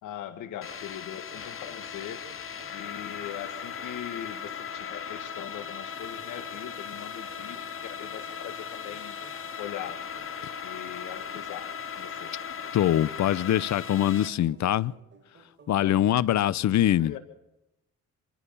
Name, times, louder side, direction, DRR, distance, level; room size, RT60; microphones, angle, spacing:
voice 1, 0.0-2.2 2.7-9.1 9.6-10.0 10.6-11.7 12.0-12.3 15.8-16.0 17.0-17.2, left 10 dB, 90° left, 1.9 m, -41 dB
sound 1, 0.6-14.3, left 7 dB, 45° left, 2.3 m, -38 dB
sound 2, 0.9-16.0, right 4 dB, 35° right, 6.1 m, -58 dB
voice 2, 12.7-14.9 15.7-17.1, left 12 dB, 65° left, 0.8 m, -23 dB
26.0 x 14.0 x 7.0 m
cardioid pair, 90°, 30 cm